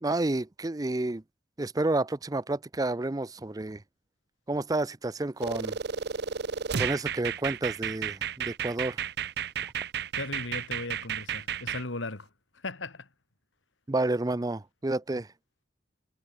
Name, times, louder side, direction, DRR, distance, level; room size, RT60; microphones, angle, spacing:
voice 1, 0.0-1.2 1.6-3.8 4.5-5.8 6.8-9.0 13.9-15.3, right 2 dB, 20° right, 0.5 m, -30 dB
sound 1, 5.4-11.8, right 7 dB, 55° right, 0.7 m, -32 dB
voice 2, 10.1-12.3 12.5-13.1, left 2 dB, 80° left, 2.4 m, -37 dB
head